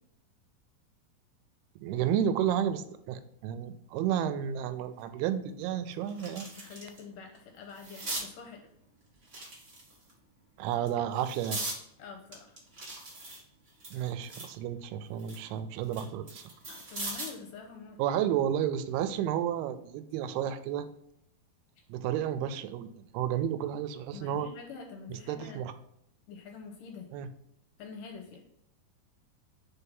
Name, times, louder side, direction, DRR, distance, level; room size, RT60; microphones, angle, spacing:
voice 1, 1.8-6.6 10.6-11.6 13.9-16.4 18.0-20.9 21.9-24.5 25.1-25.7 27.1-27.3, right 10 dB, 90° right, 11 dB, 2.5 m, -31 dB
sound 1, 5.0-5.1 5.6-7.0 7.3-8.3 9.2-10.1 10.7-11.8 12.3-14.6 15.0-17.4 18.8-19.0, right 2 dB, 60° right, 0.8 m, -40 dB
voice 2, 6.6-8.6 12.0-12.6 16.7-18.0 24.1-25.6 26.3-27.1 27.8-28.4, left 5 dB, 75° left, 2 dB, 2.1 m, -46 dB
5.6 x 4.2 x 5.3 m, 0.75 s
omnidirectional pair, 4.5 m